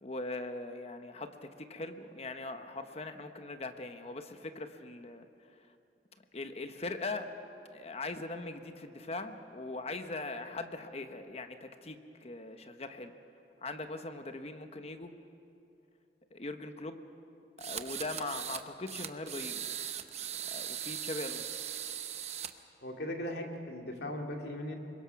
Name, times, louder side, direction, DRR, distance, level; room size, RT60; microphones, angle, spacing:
voice 1, 0.0-5.3 6.3-7.3 7.7-13.1 13.6-15.1 16.3-17.0 17.6-19.7 20.4-21.6, left 2 dB, 35° left, 8 dB, 1.0 m, -41 dB
sound 1, 17.6-18.6 18.9-22.5, right 9 dB, 40° right, 0.8 m, -39 dB
voice 2, 22.8-24.7, left 1 dB, 70° left, 2 dB, 2.4 m, -38 dB
25.5 x 22.0 x 5.8 m, 2.7 s
head